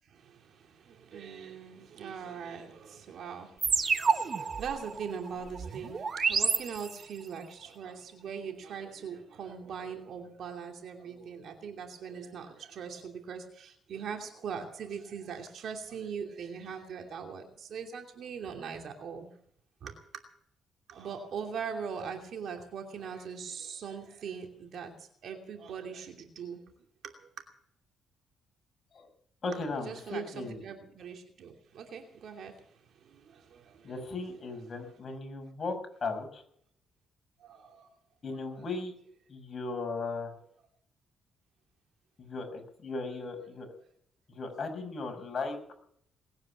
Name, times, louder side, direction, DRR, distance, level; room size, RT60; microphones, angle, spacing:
voice 1, 0.1-19.3 19.8-20.0 20.9-24.9 25.2-26.6 27.0-27.3 29.8-32.5 33.0-34.0 37.4-37.9 38.3-38.6, right 6 dB, 65° right, 3 dB, 2.8 m, -41 dB
sound 1, 3.6-7.3, right 5 dB, 45° right, 1.4 m, -30 dB
voice 2, 29.4-30.6 33.8-35.7 36.0-36.4 38.2-38.9 39.3-40.3 42.2-43.7 44.3-45.6, left 3 dB, 40° left, 3 dB, 6.4 m, -36 dB
20.0 x 9.7 x 7.4 m, 0.66 s
cardioid pair, 90°, 0 cm